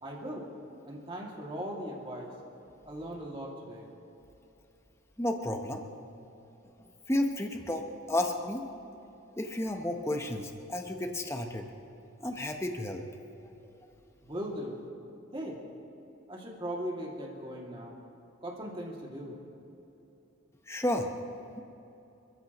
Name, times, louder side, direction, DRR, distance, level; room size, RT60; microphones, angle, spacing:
voice 1, 0.0-0.5 0.8-2.4 2.8-3.9 14.2-14.8 15.3-15.6 16.3-17.9 18.4-19.4, equal, 25° right, -2 dB, 2.4 m, -39 dB
voice 2, 5.2-5.9 7.1-8.7 9.4-11.7 12.2-13.0 20.7-21.1, left 1 dB, 15° left, 4 dB, 1.0 m, -32 dB
27.5 x 14.0 x 3.1 m, 2.9 s
head